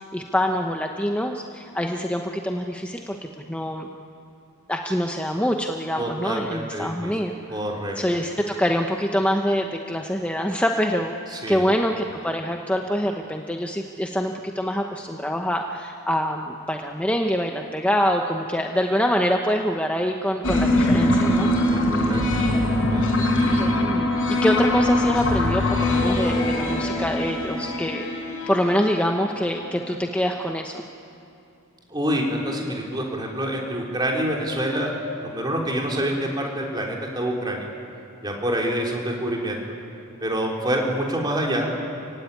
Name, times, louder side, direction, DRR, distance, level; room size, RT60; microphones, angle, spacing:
voice 1, 0.0-3.9 4.7-7.3 8.0-11.1 11.5-21.5 23.3-28.1 28.5-30.8, equal, 5° left, 3 dB, 0.8 m, -25 dB
voice 2, 6.0-7.1 7.5-8.0 11.3-11.7 21.6-22.3 22.9-23.0 31.9-37.7 38.2-39.6 40.2-41.7, equal, 20° right, -1 dB, 3.5 m, -27 dB
sound 1, 20.4-29.5, left 1 dB, 60° left, 4.7 m, -22 dB
28.0 x 16.5 x 9.8 m, 2.7 s
head